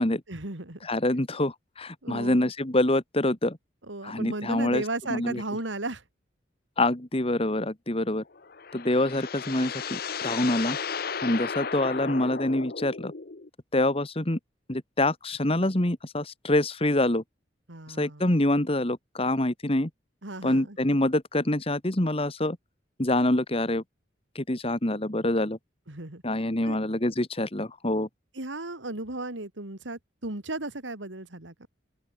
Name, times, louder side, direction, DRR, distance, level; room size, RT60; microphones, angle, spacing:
voice 1, 0.3-0.8 2.0-2.5 3.9-6.0 17.7-18.3 20.2-20.8 25.9-26.2 26.6-26.8 28.3-31.7, right 2 dB, 90° right, 2.8 m, -35 dB
voice 2, 0.8-3.6 4.0-4.8 5.1-5.4 6.8-8.2 8.7-10.8 11.2-13.1 13.7-14.4 14.7-17.2 17.9-19.9 20.4-22.6 23.0-23.8 24.4-25.6 26.2-28.1, left 1 dB, 30° left, 1.9 m, -26 dB
sound 1, 8.3-13.5, left 6 dB, 55° left, 1.0 m, -34 dB
open air
head